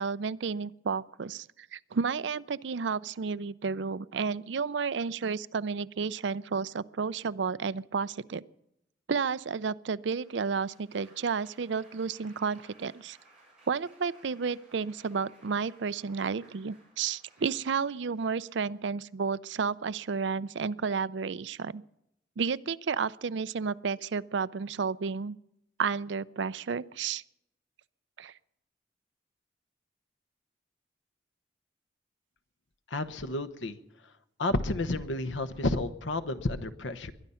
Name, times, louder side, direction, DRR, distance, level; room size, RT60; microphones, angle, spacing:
voice 1, 0.0-8.4 9.1-13.2 13.7-21.8 22.4-25.4 25.8-27.2 28.2-28.3, right 5 dB, 80° right, 17 dB, 0.5 m, -32 dB
Applause, 10.2-19.1 19.9-20.3, right 2 dB, 5° right, 6.9 m, -61 dB
voice 2, 32.9-33.8 34.4-37.1, left 2 dB, 90° left, 11 dB, 1.0 m, -31 dB
21.5 x 11.0 x 5.6 m, 0.82 s
head